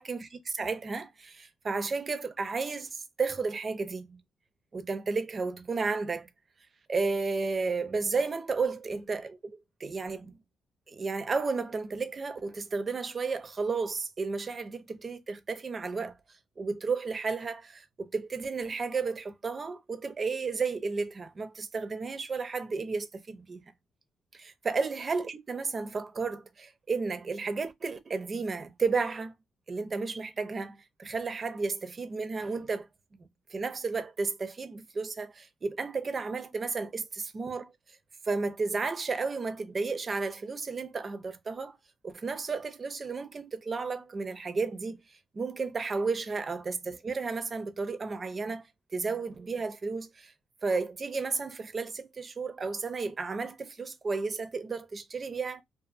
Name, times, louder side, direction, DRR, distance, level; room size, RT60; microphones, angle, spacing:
voice 1, 0.0-4.2 4.7-6.3 6.9-10.4 10.9-16.2 16.6-23.7 24.3-29.3 29.7-32.9 33.2-37.7 38.2-41.8 42.0-45.0 45.3-48.7 48.9-50.3 50.6-55.6, right 4 dB, 35° right, 0.5 m, -33 dB
2.6 x 2.4 x 2.4 m
cardioid pair, 90°, 0 cm